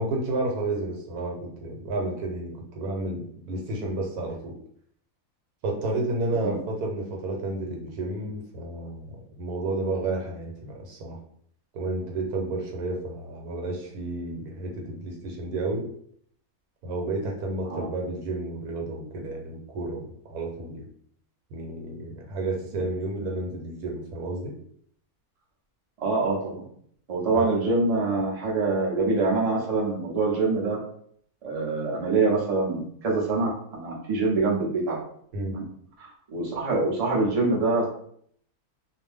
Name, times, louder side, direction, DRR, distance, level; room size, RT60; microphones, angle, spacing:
voice 1, 0.0-4.5 5.6-11.2 11.7-15.8 16.8-20.8 21.5-24.5 27.3-27.4 35.3-35.6, right 2 dB, 85° right, 0 dB, 1.2 m, -31 dB
voice 2, 26.0-26.7 27.1-30.8 31.4-35.0 35.5-35.6 36.0-37.9, right 3 dB, 35° right, -4 dB, 0.6 m, -25 dB
2.6 x 2.2 x 3.4 m, 0.63 s
omnidirectional pair, 1.6 m